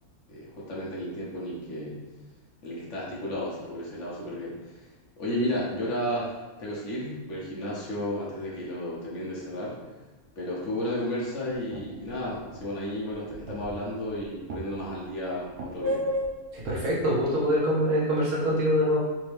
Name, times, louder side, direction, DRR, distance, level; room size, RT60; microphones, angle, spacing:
voice 1, 0.3-2.0 2.6-4.9 5.2-9.8 10.4-16.0, equal, 60° left, -5 dB, 1.1 m, -33 dB
sound 1, 11.7-15.1 15.5-17.2, equal, 85° right, 1.1 m, -34 dB
voice 2, 16.5-19.0, equal, 60° right, -5 dB, 1.3 m, -24 dB
3.4 x 3.1 x 3.3 m, 1.2 s
omnidirectional pair, 1.5 m